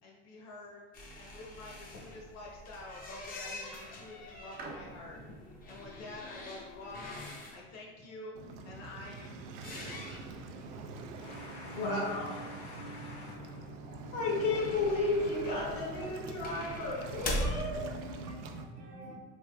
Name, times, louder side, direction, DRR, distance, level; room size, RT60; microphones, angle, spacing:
voice 1, 0.0-8.3 8.6-10.1 10.5-10.6, left 2 dB, 50° left, -2 dB, 1.0 m, -48 dB
sound 1, 0.9-7.6 9.5-10.7 11.0-11.1 11.3-11.4 13.9-17.6, left 1 dB, 25° left, 0.6 m, -42 dB
sound 2, 2.8-3.1 3.7-6.9 7.8-7.9, right 3 dB, 25° right, 0.5 m, -50 dB
Waves surf, 8.3-18.6, right 3 dB, 85° right, 0.5 m, -44 dB
voice 2, 11.2-13.6 14.1-17.8, left 2 dB, 75° left, -5 dB, 1.5 m, -34 dB
voice 3, 17.4-19.2, right 3 dB, 65° right, -2 dB, 0.9 m, -49 dB
3.5 x 3.1 x 2.2 m, 1.5 s
supercardioid pair, 115°, 35 cm